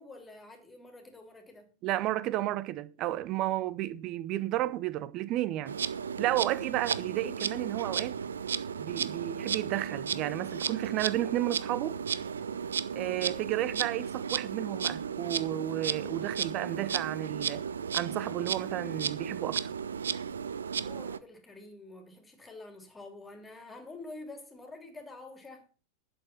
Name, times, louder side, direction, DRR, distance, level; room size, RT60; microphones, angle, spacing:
voice 1, 0.0-1.7 20.7-25.7, left 2 dB, 15° left, 3.0 m, -48 dB
voice 2, 1.8-5.8 6.2-8.2 8.8-12.0 12.9-17.6 17.9-19.7, right 14 dB, 40° right, 0.9 m, -32 dB
Insect, 5.7-21.2, right 7 dB, 70° right, 0.6 m, -34 dB
11.5 x 7.0 x 6.0 m
figure-of-eight pair, 90°, 0 cm